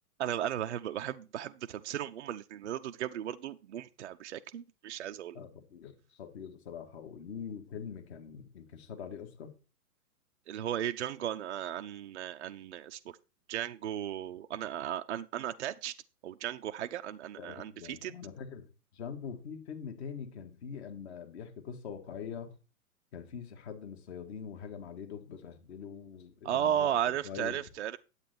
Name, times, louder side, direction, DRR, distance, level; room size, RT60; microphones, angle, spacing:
voice 1, 0.2-5.4 10.5-13.0 13.5-15.9 16.2-18.1 26.4-28.0, right 10 dB, 50° right, 0.5 m, -35 dB
voice 2, 5.3-9.5 17.4-18.7 18.9-22.5 23.1-27.6, left 7 dB, 45° left, 1.9 m, -43 dB
9.6 x 8.1 x 4.2 m
figure-of-eight pair, 115°, 46 cm